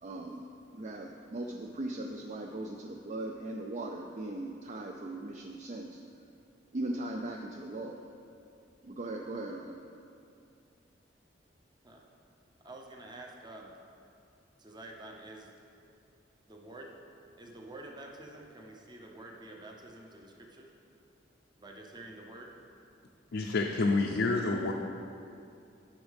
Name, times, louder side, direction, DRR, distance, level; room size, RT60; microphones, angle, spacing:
voice 1, 0.0-6.0 6.7-8.0 8.8-9.7, right 2 dB, 40° right, 2 dB, 0.4 m, -39 dB
voice 2, 12.6-13.7 14.6-15.5 16.5-17.0 17.4-20.7 21.6-22.5, right 2 dB, 25° right, 0 dB, 0.8 m, -48 dB
voice 3, 23.3-24.7, left 3 dB, 70° left, 1 dB, 0.5 m, -28 dB
10.0 x 6.2 x 3.5 m, 2.5 s
head